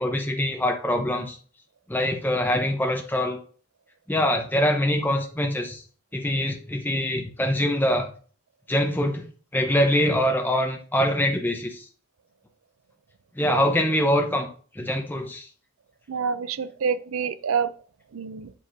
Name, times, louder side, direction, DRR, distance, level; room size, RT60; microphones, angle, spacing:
voice 1, 0.0-1.4 1.9-3.4 4.1-5.8 6.1-8.1 8.7-9.2 9.5-11.8 13.4-14.5 14.7-15.5, left 1 dB, 10° left, 3 dB, 0.7 m, -24 dB
voice 2, 16.1-17.7 18.1-18.5, right 6 dB, 75° right, 14 dB, 0.5 m, -27 dB
8.2 x 7.4 x 2.6 m, 0.43 s
head